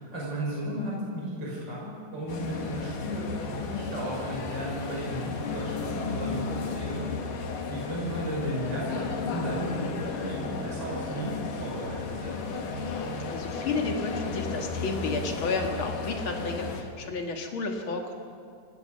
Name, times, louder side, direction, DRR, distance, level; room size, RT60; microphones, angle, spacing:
voice 1, 0.0-6.4 6.7-7.0 7.3-7.4 7.7-12.3, equal, 30° right, -4 dB, 6.3 m, -34 dB
sound 1, 2.3-16.8, left 4 dB, 75° left, 3.3 m, -34 dB
voice 2, 13.3-18.1, left 3 dB, 45° left, 2 dB, 2.4 m, -32 dB
25.5 x 18.0 x 6.7 m, 2.3 s
omnidirectional pair, 3.8 m